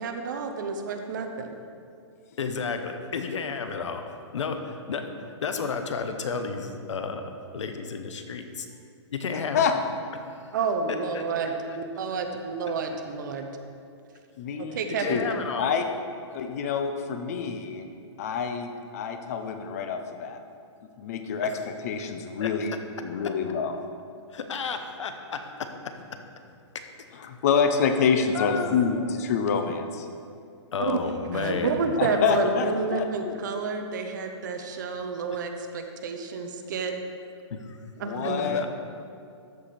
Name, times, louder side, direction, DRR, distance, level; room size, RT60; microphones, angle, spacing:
voice 1, 0.0-1.5 10.5-13.5 14.6-15.2 30.8-31.0 31.3-36.9 38.0-38.7, right 4 dB, 40° right, 5 dB, 0.7 m, -30 dB
voice 2, 2.4-8.7 9.1-9.7 10.2-10.4 11.1-11.3 15.0-15.7 21.4-21.5 22.4-22.5 24.3-25.7 28.3-29.1 30.7-31.8 32.4-32.5 37.5-37.8 38.2-38.7, left 5 dB, 80° left, 7 dB, 0.9 m, -32 dB
voice 3, 9.3-9.7 14.4-14.8 15.1-15.9 16.3-17.9 18.2-20.4 21.0-21.5 21.8-22.7 23.0-23.8 27.2-30.1 32.0-33.3 38.0-38.6, left 6 dB, 30° left, 7 dB, 0.6 m, -27 dB
13.0 x 5.0 x 4.2 m, 2.4 s
hypercardioid pair, 170°, 15 cm